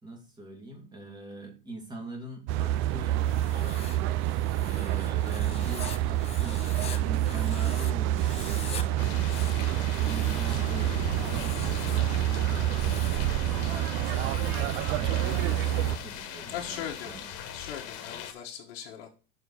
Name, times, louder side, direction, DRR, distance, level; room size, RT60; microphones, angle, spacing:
voice 1, 0.0-3.2 3.5-12.2 12.7-17.3, right 2 dB, 15° right, 1 dB, 2.4 m, -43 dB
sound 1, 2.5-16.0, right 13 dB, 45° right, 0.5 m, -27 dB
Writing, 3.2-8.8 9.2-10.7 11.1-12.1 12.6-13.3 14.0-16.0, left 9 dB, 20° left, 0.5 m, -45 dB
sound 2, 9.0-18.3, left 8 dB, 55° left, 1.5 m, -40 dB
voice 2, 16.5-17.1 17.5-19.2, left 9 dB, 85° left, -2 dB, 1.4 m, -39 dB
7.0 x 4.3 x 6.3 m, 0.35 s
supercardioid pair, 135°, 30 cm